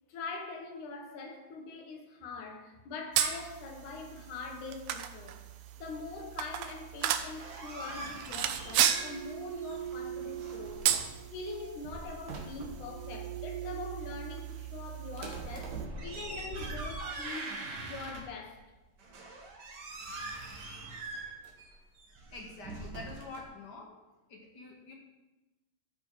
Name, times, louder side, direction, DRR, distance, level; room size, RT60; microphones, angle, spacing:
voice 1, 0.1-5.4 5.8-10.9 11.3-17.6 17.8-18.6, left 4 dB, 80° left, 2.6 m, -43 dB
sound 1, 3.1-15.9, right 10 dB, 80° right, 1.6 m, -35 dB
sound 2, 6.5-18.1, right 9 dB, 5° left, 2.4 m, -46 dB
sound 3, 7.3-9.4 9.6-11.2 11.7-12.9 15.1-18.5 19.0-23.4, right 3 dB, 45° right, 1.4 m, -42 dB
voice 2, 22.3-23.9 24.3-24.9, left 3 dB, 45° left, 1.6 m, -47 dB
13.5 x 5.1 x 4.8 m
omnidirectional pair, 3.4 m